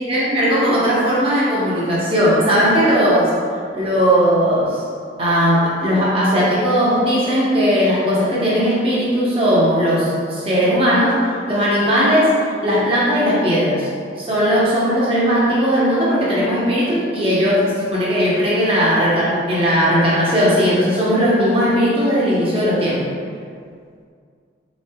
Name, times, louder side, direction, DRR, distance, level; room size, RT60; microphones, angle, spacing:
voice 1, 0.0-3.3 3.7-4.8 5.2-11.2 11.5-12.3 12.6-13.9 14.2-23.0, equal, 30° right, -8 dB, 0.8 m, -17 dB
3.8 x 3.1 x 2.2 m, 2.2 s
head